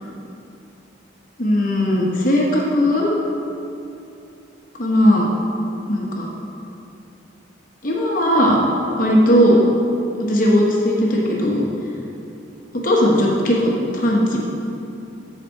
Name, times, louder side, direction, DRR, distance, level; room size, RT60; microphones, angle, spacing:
voice 1, 1.4-3.2 4.8-5.3 5.9-6.3 7.8-8.6 9.0-9.6 10.2-11.6 12.7-14.4, equal, 45° left, -2 dB, 0.9 m, -17 dB
7.4 x 4.5 x 6.4 m, 2.8 s
head